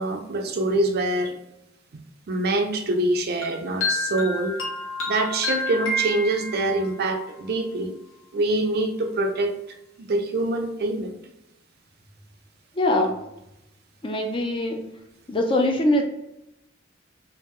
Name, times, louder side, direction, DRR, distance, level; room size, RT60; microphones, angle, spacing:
voice 1, 0.0-1.4 2.3-4.6 5.1-7.9 8.3-9.5 10.0-11.1, right 2 dB, 50° right, 4 dB, 0.4 m, -25 dB
sound 1, 3.4-6.9, left 1 dB, 80° left, 0.8 m, -29 dB
voice 2, 12.8-13.2 14.0-14.8 15.3-16.0, left 1 dB, 25° left, 3 dB, 0.4 m, -22 dB
3.6 x 2.4 x 3.1 m, 0.87 s
head